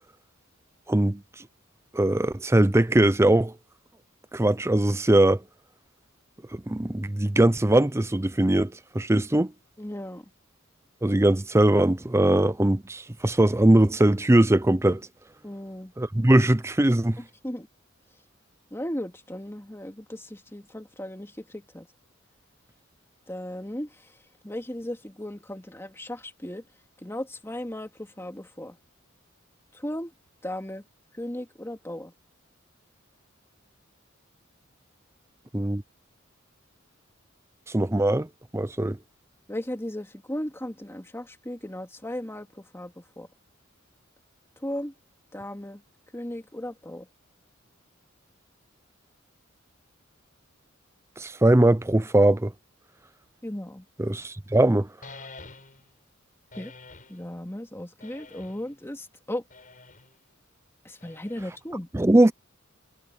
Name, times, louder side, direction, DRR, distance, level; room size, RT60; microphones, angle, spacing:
voice 1, 0.9-1.2 1.9-3.5 4.3-5.4 6.5-9.5 11.0-15.1 16.0-17.2 35.5-35.8 37.7-38.3 38.5-39.0 51.2-52.5 54.0-54.9 61.9-62.3, right 1 dB, 15° right, 0.6 m, -21 dB
voice 2, 9.8-10.2 15.4-15.9 17.4-17.7 18.7-21.9 23.3-24.0 24.4-26.6 27.0-28.8 29.7-30.1 30.4-30.8 31.1-32.1 39.5-43.3 44.6-44.9 45.3-45.8 46.1-47.1 53.4-53.8 56.5-56.7 57.1-59.4 60.8-61.9, left 1 dB, 10° left, 2.3 m, -36 dB
sound 1, 55.0-55.9 56.5-57.2 58.0-58.7 59.5-60.1 61.0-61.7, left 3 dB, 40° left, 6.5 m, -47 dB
head